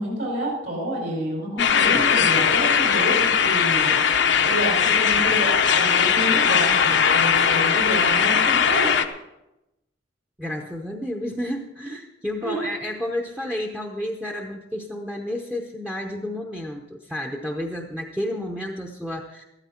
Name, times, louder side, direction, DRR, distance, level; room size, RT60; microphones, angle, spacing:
voice 1, 0.0-4.0 4.4-8.9 12.4-12.6, equal, 65° right, -2 dB, 5.2 m, -29 dB
sound 1, 1.6-9.1, left 7 dB, 65° left, 0.8 m, -19 dB
voice 2, 10.4-19.4, left 1 dB, 5° right, 2 dB, 0.8 m, -31 dB
14.0 x 13.0 x 4.4 m, 0.92 s
head